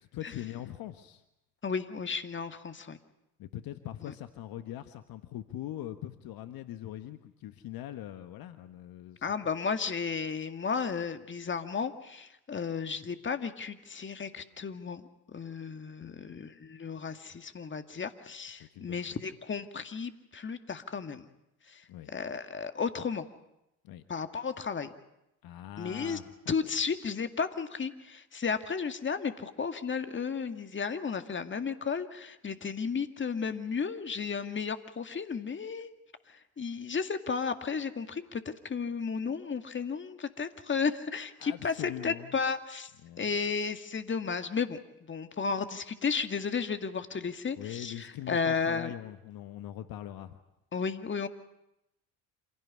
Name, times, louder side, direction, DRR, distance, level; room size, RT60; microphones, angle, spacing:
voice 1, 0.0-1.2 3.4-9.3 16.0-16.4 18.6-19.0 21.9-22.1 23.8-24.0 25.4-26.5 41.4-42.3 43.0-43.3 47.6-50.4, left 12 dB, 55° left, 10 dB, 1.5 m, -42 dB
voice 2, 1.6-3.0 9.2-21.3 21.7-23.3 24.1-24.9 25.8-26.2 26.5-35.9 36.3-42.9 43.2-44.8 45.1-48.9 50.7-51.3, left 5 dB, 25° left, 8 dB, 2.1 m, -33 dB
27.0 x 17.0 x 9.7 m, 0.86 s
hypercardioid pair, 65°, 43 cm